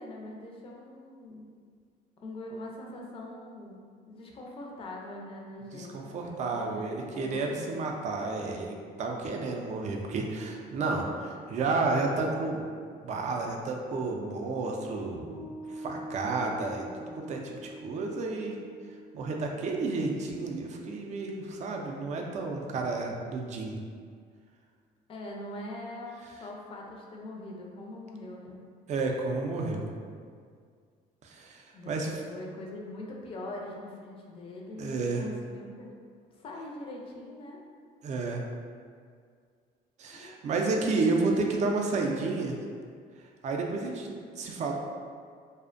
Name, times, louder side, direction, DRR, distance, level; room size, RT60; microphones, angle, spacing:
voice 1, 0.0-1.5 2.2-8.0 25.1-28.6 31.7-35.9 36.4-37.6 40.1-40.8, left 1 dB, 35° left, -1 dB, 0.4 m, -42 dB
voice 2, 5.7-12.6 13.0-15.4 15.7-16.8 17.1-18.6 19.1-23.8 28.9-29.8 31.2-32.2 34.8-35.2 38.0-38.4 40.0-42.6 43.4-44.1 44.4-44.7, right 3 dB, 45° right, 1 dB, 0.4 m, -31 dB
Piano, 15.3-22.0, right 1 dB, 80° left, 0.6 m, -46 dB
2.4 x 2.1 x 2.4 m, 2.1 s
cardioid pair, 110°, 17 cm